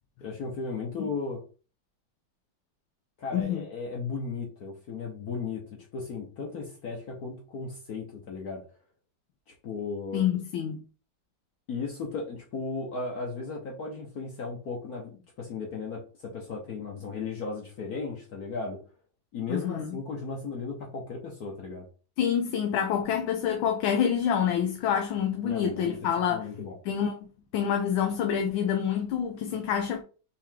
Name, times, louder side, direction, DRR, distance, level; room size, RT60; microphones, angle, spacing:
voice 1, 0.2-1.4 3.2-8.6 9.6-10.3 11.7-18.8 19.3-21.9 25.4-26.8, left 4 dB, 55° left, 1.3 m, -36 dB
voice 2, 3.3-3.6 10.1-10.8 19.5-20.0 22.2-26.5 26.8-27.2 27.5-30.0, left 8 dB, 90° left, 1.5 m, -27 dB
4.6 x 3.1 x 3.6 m
omnidirectional pair, 2.1 m